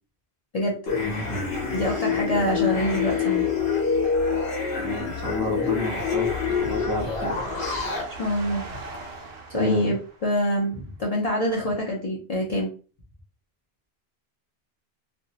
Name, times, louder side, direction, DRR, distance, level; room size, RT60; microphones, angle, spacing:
sound 1, 0.9-8.0, left 5 dB, 75° left, 1.0 m, -26 dB
voice 1, 1.7-3.5 8.2-8.6 9.5-12.7, equal, 50° left, -3 dB, 0.5 m, -25 dB
sound 2, 4.5-10.6, right 2 dB, 70° right, 0.8 m, -42 dB
voice 2, 4.8-7.5 9.5-9.9, left 1 dB, 25° right, -5 dB, 0.6 m, -30 dB
2.6 x 2.0 x 2.7 m, 0.37 s
omnidirectional pair, 1.1 m